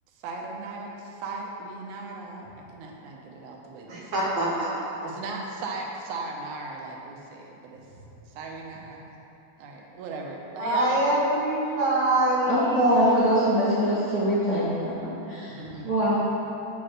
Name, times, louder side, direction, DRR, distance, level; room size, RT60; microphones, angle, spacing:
voice 1, 0.2-4.2 5.0-7.8 8.3-9.0 9.6-11.1 15.5-15.9, right 3 dB, 85° right, 0 dB, 2.2 m, -37 dB
voice 2, 3.9-4.7 10.6-13.4, right 1 dB, 65° right, -5 dB, 2.5 m, -25 dB
voice 3, 12.5-14.7 15.3-15.5 15.8-16.2, equal, 40° right, -13 dB, 1.8 m, -22 dB
7.0 x 4.2 x 6.4 m, 2.9 s
omnidirectional pair, 3.4 m